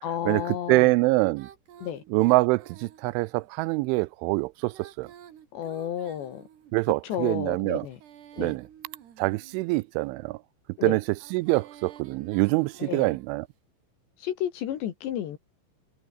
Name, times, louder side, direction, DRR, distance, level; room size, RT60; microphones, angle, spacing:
voice 1, 0.0-0.9 1.8-2.0 5.5-6.4 7.0-8.0 8.4-8.6 10.8-11.0 12.8-13.1 14.2-15.4, left 10 dB, 70° left, 4.1 m, -32 dB
voice 2, 0.7-1.5 2.1-5.1 6.7-7.9 8.4-8.6 9.2-10.4 10.8-11.0 11.3-13.5, right 23 dB, 90° right, 3.1 m, -24 dB
Female singing, 1.3-3.5 4.6-6.9 7.7-9.9 11.1-13.4, right 9 dB, 65° right, 4.4 m, -51 dB
omnidirectional pair, 5.4 m